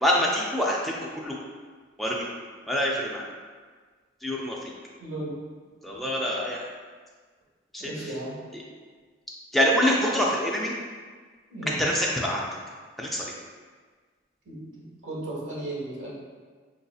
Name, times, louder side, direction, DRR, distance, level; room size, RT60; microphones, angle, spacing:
voice 1, 0.0-1.3 2.0-2.2 2.7-3.2 4.2-4.6 5.8-6.7 7.7-7.9 9.5-10.7 11.8-12.4 13.0-13.2, equal, ahead, -4 dB, 0.4 m, -25 dB
voice 2, 5.0-5.4 7.8-8.4 11.5-11.9 14.4-16.1, right 1 dB, 80° right, -7 dB, 1.4 m, -35 dB
4.8 x 2.6 x 2.3 m, 1.5 s
head